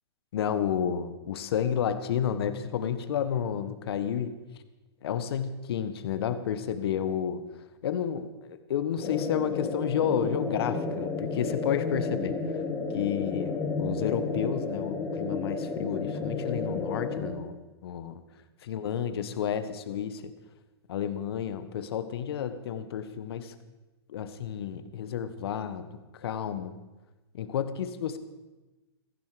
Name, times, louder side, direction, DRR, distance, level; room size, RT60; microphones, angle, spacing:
voice 1, 0.3-4.3 5.0-7.4 7.8-12.4 12.9-17.6 17.8-18.2 18.6-20.3 20.9-23.6 24.1-26.7 27.3-28.2, left 8 dB, 65° left, 11 dB, 1.6 m, -31 dB
sound 1, 9.0-17.3, left 4 dB, 25° left, 3.4 m, -32 dB
15.5 x 15.5 x 5.2 m, 1.1 s
hypercardioid pair, 120°, 14 cm